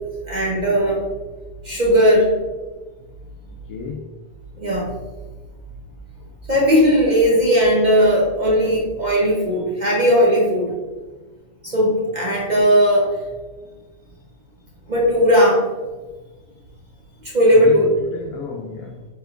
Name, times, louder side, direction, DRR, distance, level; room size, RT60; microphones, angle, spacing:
voice 1, 0.3-1.0 1.6-2.4 4.6-4.9 6.5-10.7 11.6-13.2 14.9-15.7 17.2-17.8, equal, 45° right, -4 dB, 0.6 m, -17 dB
voice 2, 3.7-4.2 17.5-19.1, left 4 dB, 70° left, 0 dB, 1.0 m, -32 dB
4.4 x 3.4 x 2.4 m, 1.2 s
omnidirectional pair, 1.7 m